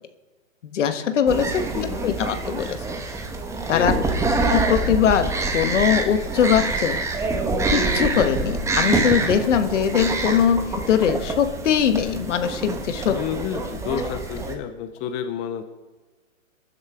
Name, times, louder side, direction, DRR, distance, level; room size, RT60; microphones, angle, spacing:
voice 1, 0.6-1.7 2.0-2.8 3.7-3.9 4.5-7.0 7.7-13.2, left 8 dB, 60° left, 9 dB, 1.5 m, -21 dB
sound 1, 1.3-14.5, right 3 dB, 5° right, 1.1 m, -26 dB
voice 2, 1.7-2.2 3.6-4.6 13.1-15.6, left 8 dB, 20° left, 10 dB, 0.6 m, -30 dB
23.5 x 10.5 x 3.6 m, 1.3 s
hypercardioid pair, 125°, 41 cm